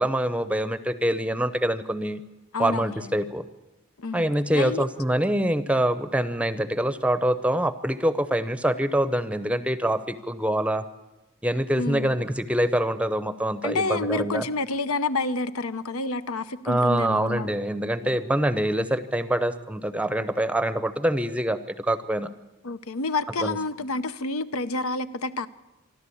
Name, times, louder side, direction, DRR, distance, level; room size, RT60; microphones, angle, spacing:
voice 1, 0.0-2.2 2.6-3.4 4.1-10.8 11.4-14.4 16.7-22.3 23.4-23.6, right 1 dB, 5° right, 12 dB, 0.7 m, -25 dB
voice 2, 2.5-3.1 4.0-4.3 4.5-4.9 11.7-12.2 13.6-17.5 22.6-25.5, left 3 dB, 80° left, 13 dB, 0.8 m, -29 dB
26.0 x 12.0 x 8.5 m, 1.1 s
head